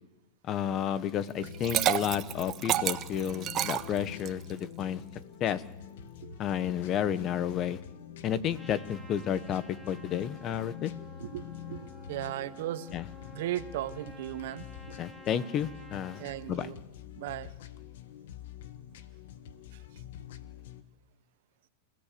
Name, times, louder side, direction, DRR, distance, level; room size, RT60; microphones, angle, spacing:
voice 1, 0.5-5.0 5.4-5.6 6.4-7.8 8.2-10.9 12.9-13.0 15.0-16.2 16.5-16.7, left 9 dB, 35° left, 1.1 m, -31 dB
sound 1, 1.4-20.8, left 9 dB, 75° left, 1.4 m, -46 dB
Liquid, 1.4-4.5, right 12 dB, 35° right, 1.1 m, -30 dB
Trumpet, 8.5-16.4, left 1 dB, 10° left, 3.1 m, -51 dB
voice 2, 11.7-12.9 13.3-14.6 16.2-16.8 17.2-17.5, right 15 dB, 65° right, 1.0 m, -36 dB
29.0 x 15.5 x 6.9 m
supercardioid pair, 130°, 0 cm